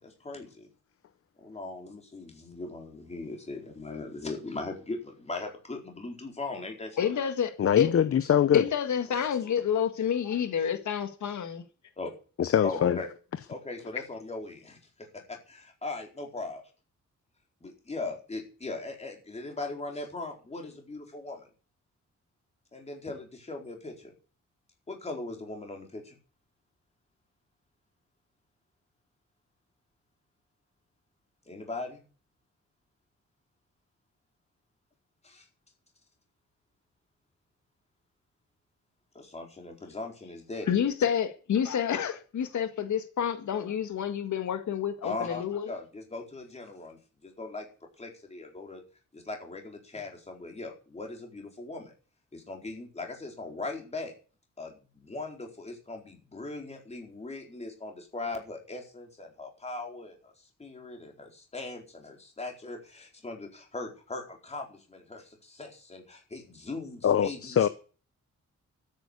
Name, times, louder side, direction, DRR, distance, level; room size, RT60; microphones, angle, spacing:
voice 1, 0.0-0.7 1.4-7.1 12.0-12.1 12.6-13.1 13.5-16.6 17.6-21.5 22.7-24.1 24.9-26.2 31.5-32.0 35.2-35.5 39.1-40.8 45.0-47.7 48.0-48.8 49.1-51.9 52.3-54.1 54.6-67.7, left 3 dB, 20° left, 4.4 m, -39 dB
voice 2, 7.0-7.5 7.8-7.9 8.5-11.6 40.7-45.7, left 8 dB, 85° left, 1.8 m, -28 dB
voice 3, 7.6-8.6 12.4-13.0 67.0-67.7, left 9 dB, 50° left, 0.8 m, -23 dB
13.5 x 9.3 x 8.3 m
wide cardioid pair, 175°, 29 cm